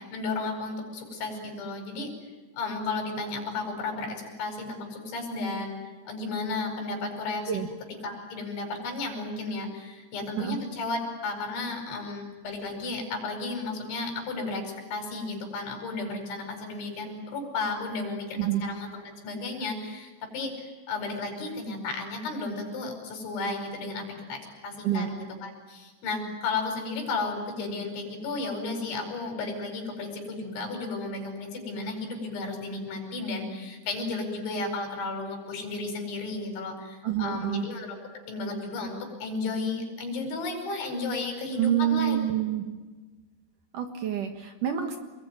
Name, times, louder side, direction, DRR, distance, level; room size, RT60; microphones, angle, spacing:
voice 1, 0.0-2.1 2.6-5.8 6.1-7.5 8.0-38.0 38.3-42.2, left 3 dB, 85° left, 3 dB, 7.4 m, -33 dB
voice 2, 37.0-37.7 41.5-42.6 43.7-45.0, right 11 dB, 60° right, 5 dB, 2.5 m, -27 dB
27.5 x 21.5 x 9.4 m, 1.3 s
omnidirectional pair, 5.2 m